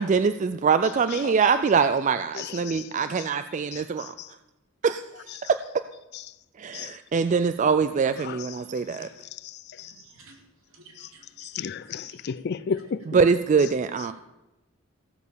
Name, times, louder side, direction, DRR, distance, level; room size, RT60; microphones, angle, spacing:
voice 1, 0.0-4.1 4.8-5.0 5.4-5.6 6.6-9.1 13.1-14.1, right 5 dB, 35° right, 0.3 m, -23 dB
voice 2, 2.3-2.8 3.7-3.8 6.7-6.9 8.2-8.4 9.8-9.9 11.4-13.0, left 6 dB, 50° left, 0.4 m, -32 dB
voice 3, 9.9-10.4 11.0-11.2 11.9-12.0 12.6-12.7, right 2 dB, 75° right, 3.3 m, -52 dB
15.5 x 6.5 x 6.9 m
head